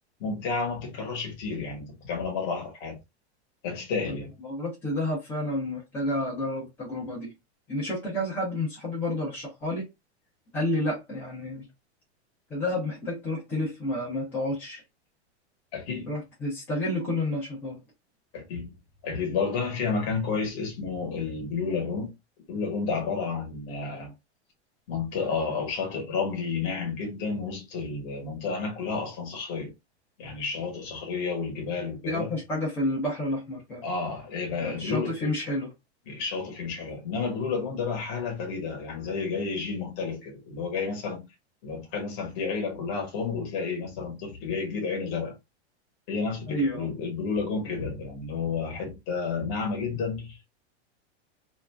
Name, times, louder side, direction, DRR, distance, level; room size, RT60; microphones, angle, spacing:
voice 1, 0.2-3.0 3.6-4.3 15.7-16.1 18.3-18.7 19.0-22.1 22.5-24.1 24.9-29.7 30.2-32.4 33.8-35.4 36.1-41.3 41.6-45.4 46.1-50.5, left 5 dB, 25° left, 0.9 m, -31 dB
voice 2, 4.4-7.3 7.7-9.9 10.5-11.7 12.5-14.8 16.1-17.8 32.0-33.8 34.6-35.7 46.5-46.9, left 1 dB, 5° left, 0.4 m, -30 dB
2.5 x 2.1 x 3.1 m
supercardioid pair, 180°, 34 cm